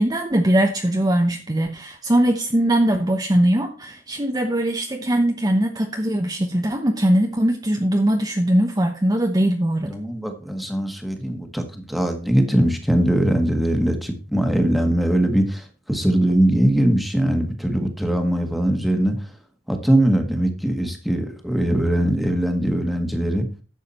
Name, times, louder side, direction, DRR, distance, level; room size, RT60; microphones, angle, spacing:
voice 1, 0.0-9.9, right 1 dB, 20° right, 3 dB, 0.9 m, -20 dB
voice 2, 9.8-19.1 19.7-23.5, right 1 dB, ahead, 5 dB, 1.6 m, -21 dB
11.0 x 7.2 x 4.3 m, 0.36 s
head